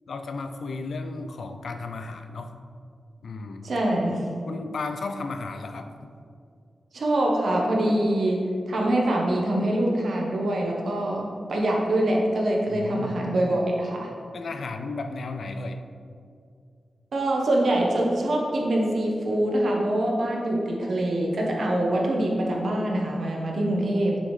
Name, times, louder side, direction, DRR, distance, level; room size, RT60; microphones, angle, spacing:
voice 1, 0.1-2.6 3.2-3.7 4.5-6.1 12.7-13.2 14.3-15.8, left 3 dB, 65° left, 7 dB, 0.4 m, -34 dB
voice 2, 3.6-4.3 6.9-14.1 17.1-24.2, right 1 dB, 60° right, -1 dB, 1.1 m, -24 dB
6.7 x 5.5 x 3.2 m, 2.3 s
wide cardioid pair, 160°, 0 cm